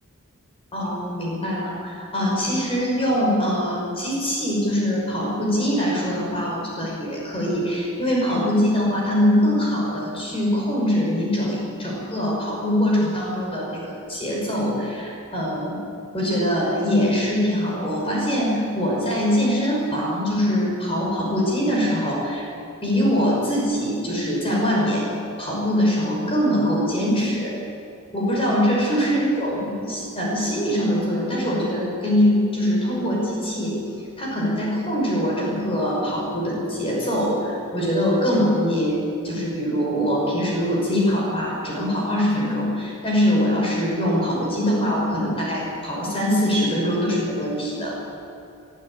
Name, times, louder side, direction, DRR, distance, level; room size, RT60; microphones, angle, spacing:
voice 1, 0.7-15.8 16.1-22.5 22.8-25.1 25.4-27.6 28.1-33.8 34.2-48.0, equal, 25° left, -3 dB, 5.9 m, -23 dB
23.0 x 13.0 x 8.9 m, 2.8 s
head